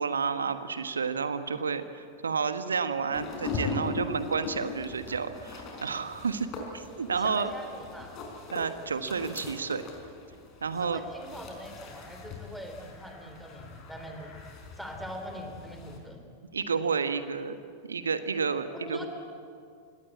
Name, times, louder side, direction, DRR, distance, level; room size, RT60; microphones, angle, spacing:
voice 1, 0.0-7.5 8.5-9.8 10.6-11.0 16.5-17.6 17.9-19.0, right 5 dB, 70° right, 11 dB, 1.3 m, -30 dB
sound 1, 3.1-16.0, left 4 dB, 35° left, 5.1 m, -40 dB
voice 2, 7.1-8.2 10.8-14.4 14.8-16.2 18.7-19.1, equal, ahead, 4 dB, 3.8 m, -42 dB
25.0 x 19.0 x 8.5 m, 2.3 s
figure-of-eight pair, 90°, 0 cm